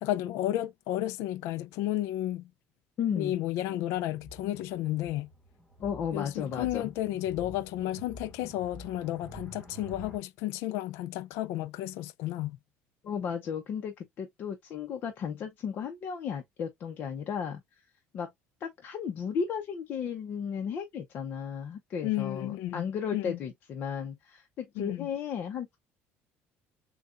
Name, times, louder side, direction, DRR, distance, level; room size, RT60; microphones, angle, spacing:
voice 1, 0.0-2.4 3.2-5.3 6.1-12.6 22.0-22.9 23.1-23.4 24.8-25.1, left 14 dB, 75° left, 0.4 m, -32 dB
voice 2, 3.0-3.4 5.8-6.9 13.0-17.8 18.1-18.3 18.6-25.8, left 7 dB, 40° left, 0.7 m, -34 dB
sound 1, 4.0-10.2, right 1 dB, 15° left, 1.2 m, -49 dB
6.6 x 2.3 x 2.4 m
cardioid pair, 170°, 5 cm